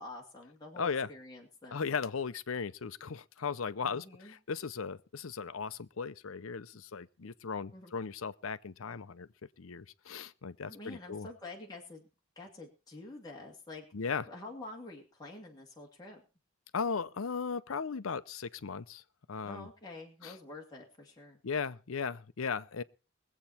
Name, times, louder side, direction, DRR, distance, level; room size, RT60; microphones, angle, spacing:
voice 1, 0.0-1.8 3.8-4.3 6.7-6.8 7.7-7.9 10.6-12.0 12.4-13.9 14.3-16.2 19.4-21.4, left 2 dB, 20° left, 2.4 m, -48 dB
voice 2, 0.8-1.1 1.7-9.3 9.6-11.3 13.9-14.3 16.7-19.0 19.3-19.7 20.2-20.4 21.4-22.8, left 5 dB, 80° left, 0.7 m, -37 dB
21.5 x 8.1 x 4.3 m
head